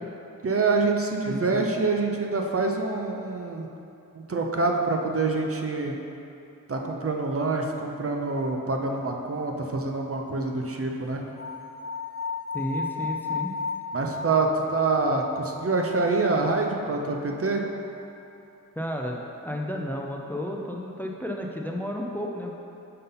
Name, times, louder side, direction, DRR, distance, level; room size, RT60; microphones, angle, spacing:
voice 1, 0.4-3.7 4.2-6.0 6.7-11.2 13.9-17.6, right 3 dB, 45° right, 1 dB, 0.6 m, -26 dB
voice 2, 1.3-1.6 12.5-13.5 18.8-19.2 19.4-22.5, equal, 5° left, 0 dB, 0.5 m, -32 dB
sound 1, 11.4-16.5, left 4 dB, 40° left, 0.9 m, -34 dB
5.5 x 5.4 x 4.0 m, 2.8 s
wide cardioid pair, 70°, 33 cm